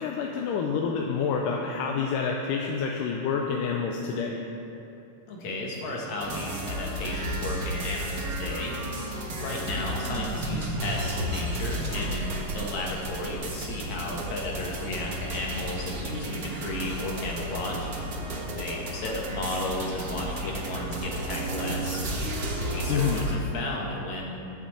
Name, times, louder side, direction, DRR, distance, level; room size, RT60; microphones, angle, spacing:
voice 1, 0.0-4.4 22.9-23.3, left 6 dB, 80° left, 0 dB, 2.3 m, -28 dB
voice 2, 5.3-8.7 9.4-17.9 18.5-22.0 22.7-24.3, left 2 dB, 60° left, -2 dB, 3.0 m, -34 dB
sound 1, 6.2-23.4, right 1 dB, 70° right, 0.8 m, -33 dB
21.0 x 7.2 x 4.3 m, 2.7 s
omnidirectional pair, 3.8 m